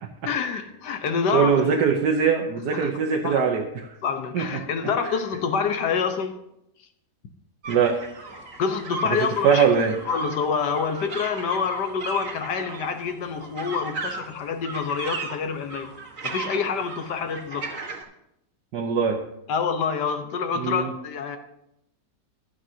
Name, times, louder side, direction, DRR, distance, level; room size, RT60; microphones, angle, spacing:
voice 1, 0.3-1.7 2.7-2.9 3.2-3.4 4.0-6.4 8.6-9.7 10.1-15.9 16.2-17.7 19.5-21.4, left 6 dB, 75° left, 1.6 m, -27 dB
voice 2, 1.3-3.9 4.3-4.6 5.0-5.1 7.7-8.0 9.1-9.9 18.7-19.2 20.5-20.9, right 6 dB, 70° right, 1.5 m, -22 dB
sound 1, 7.6-18.0, right 3 dB, 50° right, 1.7 m, -36 dB
15.0 x 11.0 x 2.8 m
omnidirectional pair, 1.8 m